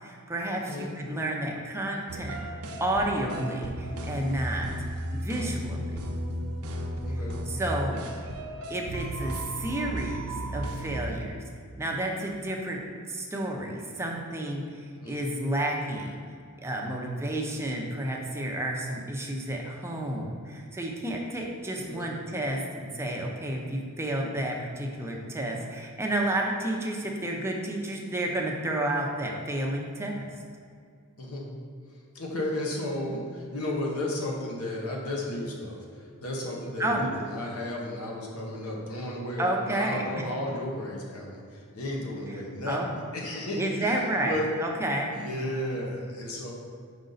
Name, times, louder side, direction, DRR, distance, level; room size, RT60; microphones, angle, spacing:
voice 1, 0.0-4.7 5.1-6.0 7.1-8.2 8.7-11.4 11.8-12.8 13.1-16.2 16.6-30.2 32.9-33.2 36.8-37.1 39.4-40.2 42.3-42.9 43.6-45.2, right 1 dB, 10° right, -1 dB, 0.7 m, -31 dB
sound 1, 2.1-11.0, right 1 dB, 80° right, 0.6 m, -34 dB
voice 2, 7.0-7.4 15.0-15.1 21.9-22.1 31.2-31.4 32.1-35.8 36.2-42.8 43.1-44.5 45.1-46.5, left 1 dB, 85° left, -2 dB, 1.1 m, -33 dB
5.3 x 5.0 x 3.9 m, 2.2 s
head